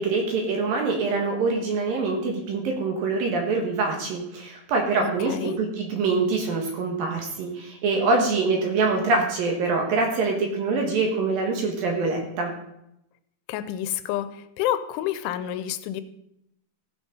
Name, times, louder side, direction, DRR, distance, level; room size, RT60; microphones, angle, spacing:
voice 1, 0.0-12.5, right 3 dB, 60° right, 1 dB, 2.8 m, -25 dB
voice 2, 5.0-5.6 13.5-16.0, left 12 dB, 90° left, 12 dB, 3.1 m, -29 dB
15.5 x 6.3 x 5.3 m, 0.81 s
omnidirectional pair, 5.4 m